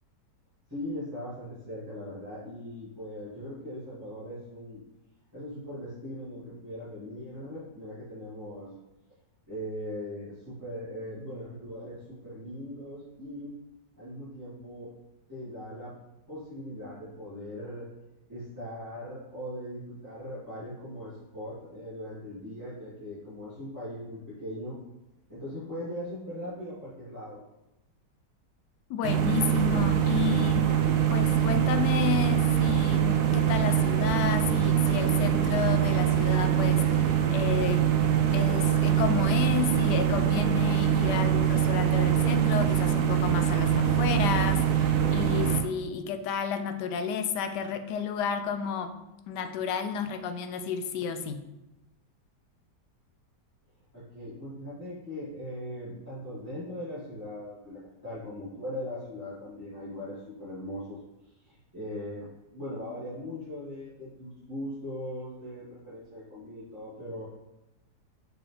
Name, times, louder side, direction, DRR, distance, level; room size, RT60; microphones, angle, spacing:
voice 1, 0.7-4.8 5.3-8.7 9.5-13.5 14.0-14.9 15.3-15.9 16.3-17.9 18.3-24.8 25.3-27.4 53.9-67.2, left 1 dB, 10° right, -14 dB, 2.2 m, -40 dB
voice 2, 28.9-30.7 31.1-37.8 38.3-48.9 49.3-51.4, left 7 dB, 75° left, 8 dB, 1.2 m, -31 dB
sound 1, 29.0-45.6, right 9 dB, 70° right, 1.1 m, -24 dB
6.1 x 4.8 x 3.3 m, 0.96 s
omnidirectional pair, 1.9 m